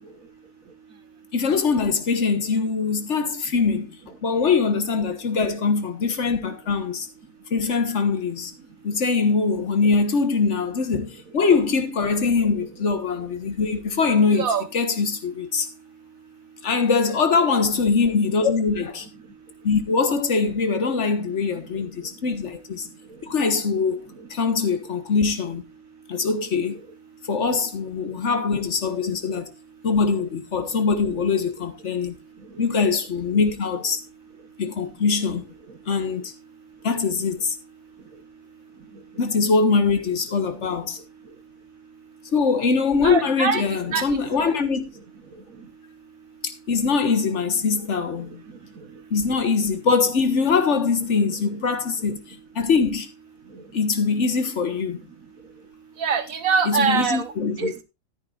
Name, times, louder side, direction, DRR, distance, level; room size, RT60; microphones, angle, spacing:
voice 1, 1.3-4.0 4.2-7.1 7.5-8.5 8.8-14.5 14.7-15.7 16.6-19.1 19.6-22.9 23.2-24.0 24.3-25.6 26.1-26.8 27.3-29.5 29.8-32.2 32.6-34.0 34.6-35.5 35.9-36.3 36.8-37.6 39.2-41.0 42.3-44.9 46.4-48.4 49.1-52.2 52.6-53.1 53.7-55.0 56.7-57.7, left 5 dB, 60° left, 1.7 m, -22 dB
voice 2, 14.3-14.6 43.0-43.6 43.9-44.5 56.0-57.3 57.6-57.8, right 6 dB, 80° right, 1.7 m, -24 dB
13.0 x 9.9 x 2.5 m
omnidirectional pair, 1.4 m